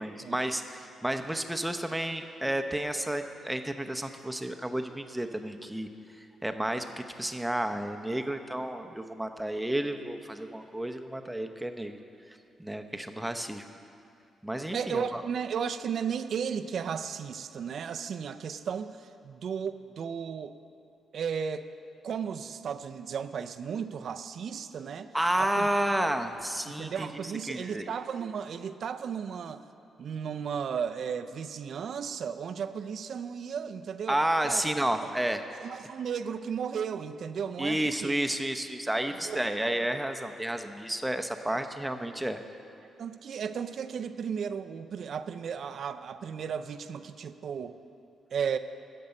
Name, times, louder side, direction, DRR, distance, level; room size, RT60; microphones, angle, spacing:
voice 1, 0.0-5.9 6.4-12.0 12.6-13.6 14.4-15.2 25.1-27.1 27.5-27.9 34.1-35.4 37.6-42.4, right 1 dB, 10° right, 6 dB, 0.8 m, -31 dB
voice 2, 14.7-20.6 21.1-21.7 22.0-25.1 25.4-25.7 26.7-29.6 30.0-34.6 35.0-35.1 35.6-38.1 39.1-39.8 41.5-41.6 43.0-47.8 48.3-48.6, right 7 dB, 65° right, 11 dB, 0.5 m, -34 dB
13.5 x 5.4 x 7.8 m, 2.5 s
supercardioid pair, 55°, 0 cm